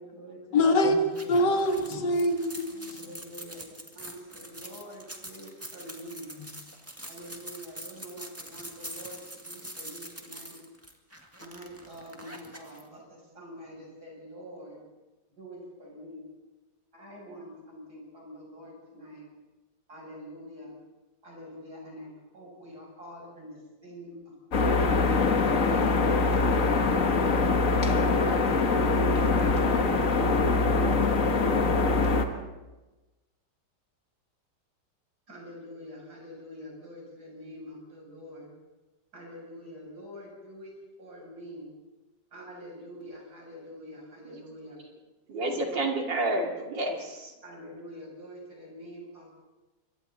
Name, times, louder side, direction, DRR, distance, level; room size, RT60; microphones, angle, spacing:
voice 1, 0.0-1.8 3.0-6.3 7.0-10.6 11.4-14.8 15.4-16.3 16.9-19.2 19.9-20.8 21.2-25.0 35.3-38.5 39.1-40.7 41.0-41.7 42.3-44.8 45.5-45.8 46.1-46.4 47.4-49.4, equal, 60° right, 8.1 m, -46 dB
voice 2, 0.5-1.0 1.3-3.0, left 1 dB, 75° left, 2.3 m, -24 dB
sound 1, 1.1-12.8, right 1 dB, 10° right, 1.9 m, -44 dB
sound 2, 24.5-32.3, left 3 dB, 50° left, 1.8 m, -23 dB
voice 3, 45.3-47.3, right 2 dB, 85° right, 3.5 m, -30 dB
26.5 x 24.0 x 4.1 m
omnidirectional pair, 1.9 m